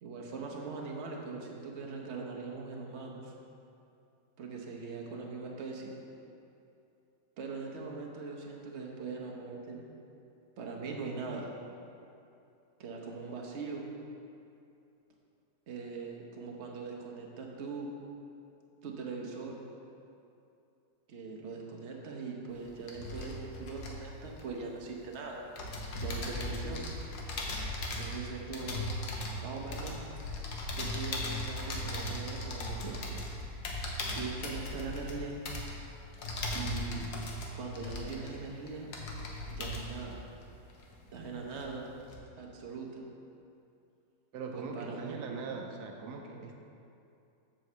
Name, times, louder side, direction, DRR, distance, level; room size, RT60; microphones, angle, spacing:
voice 1, 0.0-3.3 4.4-5.9 7.4-9.8 10.6-11.5 12.8-13.9 15.7-17.9 18.8-19.6 21.1-25.4 25.9-26.8 27.9-28.7 29.4-30.0 30.7-33.0 34.1-35.4 36.5-37.1 37.5-38.9 39.5-40.2 41.1-41.9 42.4-43.0 44.5-45.2, right 4 dB, 50° right, 0 dB, 1.1 m, -41 dB
sound 1, 22.5-25.1 25.6-41.2 41.5-42.2, left 1 dB, 90° left, 1.5 m, -38 dB
voice 2, 44.3-46.6, right 4 dB, 80° right, 2 dB, 1.2 m, -41 dB
7.7 x 4.4 x 6.8 m, 2.7 s
omnidirectional pair, 1.7 m